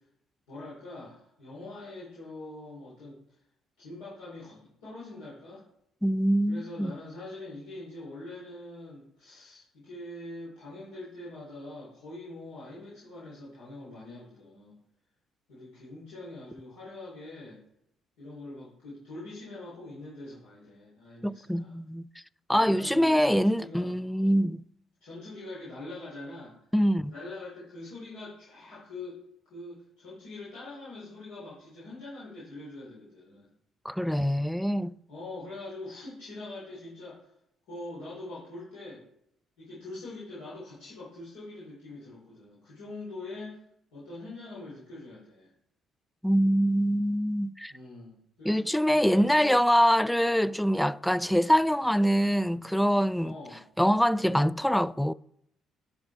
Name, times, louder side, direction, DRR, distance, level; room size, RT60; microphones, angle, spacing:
voice 1, 0.5-3.4 3.8-5.6 6.5-14.7 15.5-17.6 18.2-21.7 22.5-23.9 25.0-26.6 27.1-29.2 29.5-33.5 35.1-37.3 37.7-39.0 39.6-43.6 43.9-45.5 47.7-48.6 48.9-49.5 53.2-53.6, left 2 dB, 75° left, 3.8 m, -43 dB
voice 2, 6.0-6.9 21.2-22.1 22.5-24.6 26.7-27.1 33.8-34.9 46.2-47.7 48.5-53.3 53.8-55.1, equal, 5° left, 0.3 m, -24 dB
11.0 x 6.0 x 4.3 m
hypercardioid pair, 45°, 0 cm